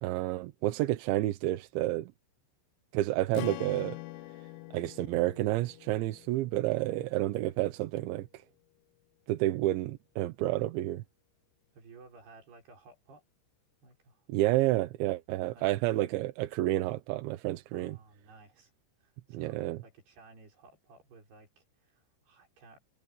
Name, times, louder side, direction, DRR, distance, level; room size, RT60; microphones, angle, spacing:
voice 1, 0.0-2.1 2.9-4.0 4.7-8.4 9.3-11.0 14.3-18.0 19.3-19.8, right 16 dB, 75° right, 2.9 m, -30 dB
Strum, 3.3-7.6, left 20 dB, 90° left, 2.5 m, -45 dB
voice 2, 11.7-13.2 13.8-14.3 15.5-15.7 17.7-18.7 19.0-22.8, right 3 dB, 50° right, 8.0 m, -56 dB
omnidirectional pair, 6.0 m